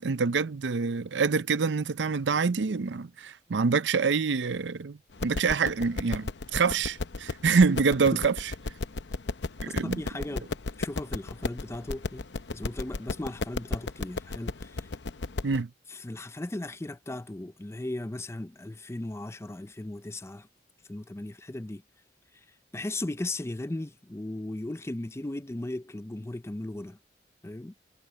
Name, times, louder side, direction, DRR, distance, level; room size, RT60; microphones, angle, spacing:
voice 1, 0.0-8.5 9.6-10.0 15.4-15.7, right 5 dB, 85° right, 0.6 m, -26 dB
sound 1, 5.1-15.6, left 3 dB, 75° left, 0.8 m, -35 dB
voice 2, 9.8-12.2 12.5-14.9 15.9-20.5 20.9-21.8 22.7-27.0 27.4-27.7, left 1 dB, 15° left, 0.5 m, -37 dB
head